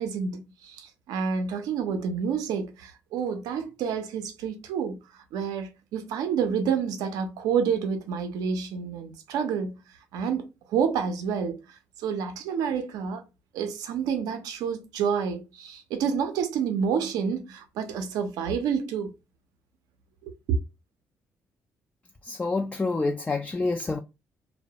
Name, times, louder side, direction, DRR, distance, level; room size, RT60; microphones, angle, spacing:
voice 1, 0.0-9.8 10.1-13.2 13.5-19.1 20.2-20.6, right 6 dB, 85° right, 0.5 m, -29 dB
voice 2, 22.2-24.0, left 3 dB, 20° left, 0.3 m, -27 dB
2.2 x 2.1 x 2.7 m
supercardioid pair, 60°, 6 cm